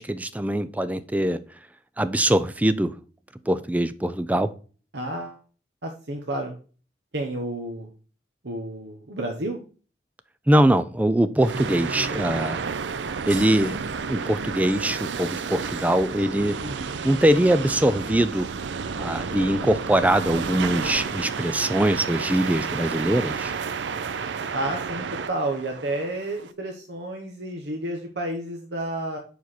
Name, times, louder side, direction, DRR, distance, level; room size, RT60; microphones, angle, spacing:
voice 1, 0.0-1.4 2.0-3.0 3.5-4.5 10.5-12.6 13.3-13.8 14.1-16.6 17.0-18.5 18.9-23.5, right 1 dB, 10° right, 0.4 m, -22 dB
voice 2, 4.9-5.4 5.8-6.5 7.1-7.9 8.4-9.6 16.6-17.0 24.5-29.2, right 1 dB, 70° right, 1.1 m, -31 dB
sound 1, 11.4-26.5, right 5 dB, 85° right, 0.5 m, -31 dB
7.1 x 4.6 x 4.2 m
head